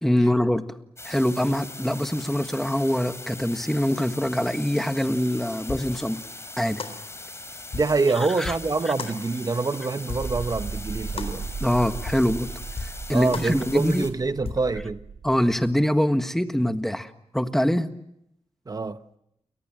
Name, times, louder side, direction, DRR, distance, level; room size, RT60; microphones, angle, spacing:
voice 1, 0.0-0.6 1.0-6.2 6.6-6.8 8.4-8.5 11.6-12.5 12.8-14.0 15.2-17.9, equal, 5° left, 1.6 m, -24 dB
sound 1, 1.0-14.1, left 2 dB, 25° left, 3.7 m, -41 dB
sound 2, 5.1-5.2 5.7-5.9 6.2-6.3 6.8-7.0 7.3-7.4 7.7-8.0 8.4-8.7 9.0-9.2 9.5-9.6 10.1-10.3 10.6-10.7 11.2-11.3 11.7-11.8 12.1-12.3 12.8-13.0 13.3-13.5 13.9-14.0 14.4-14.7, left 5 dB, 65° left, 4.1 m, -35 dB
voice 2, 7.7-11.5 13.1-15.0 18.7-19.0, right 3 dB, 35° right, 1.1 m, -26 dB
sound 3, 10.2-15.7, right 5 dB, 55° right, 2.8 m, -36 dB
30.0 x 23.5 x 7.7 m
wide cardioid pair, 105°, 11 cm